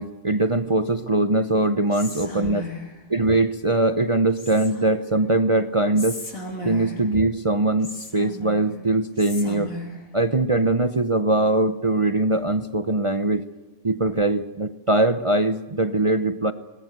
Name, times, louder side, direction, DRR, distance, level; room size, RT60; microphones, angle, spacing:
voice 1, 0.0-2.7 3.1-6.2 6.6-9.7 10.1-13.4 13.8-16.5, right 2 dB, 50° right, 11 dB, 0.3 m, -21 dB
Whispering, 1.9-3.0 4.4-5.0 6.0-7.1 7.8-8.7 9.2-10.0, left 2 dB, 50° left, 4.3 m, -35 dB
21.5 x 19.0 x 8.2 m, 1.2 s
omnidirectional pair, 1.9 m